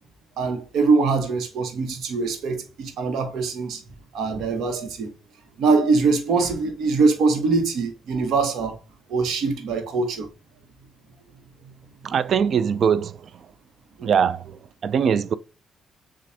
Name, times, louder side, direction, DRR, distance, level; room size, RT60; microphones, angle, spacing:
voice 1, 0.4-3.8 4.1-5.1 5.6-8.8 9.1-10.3 14.0-14.1, right 4 dB, 75° right, 1.1 m, -23 dB
voice 2, 12.0-13.2 14.0-15.3, right 7 dB, 55° right, 0.4 m, -22 dB
7.3 x 2.5 x 2.7 m
cardioid pair, 90°, 0 cm